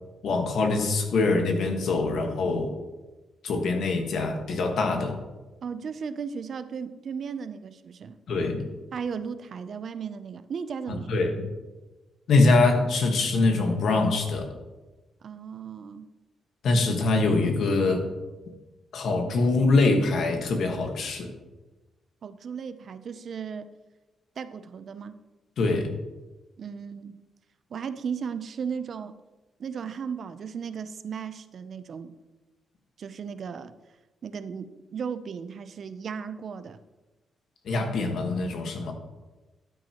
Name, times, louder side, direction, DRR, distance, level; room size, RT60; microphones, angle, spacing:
voice 1, 0.2-2.7 3.4-5.2 8.3-8.7 10.9-11.5 12.3-14.5 16.6-18.1 18.9-21.3 25.6-26.0 37.6-38.9, left 3 dB, 65° left, 4 dB, 1.5 m, -24 dB
voice 2, 5.6-8.2 8.9-11.1 15.2-16.1 22.2-23.7 24.4-25.2 26.6-27.2 27.7-29.1 29.6-32.1 33.0-33.7 34.2-36.8, right 6 dB, 50° right, 12 dB, 0.6 m, -35 dB
12.5 x 9.2 x 3.0 m, 1.1 s
cardioid pair, 145°, 0 cm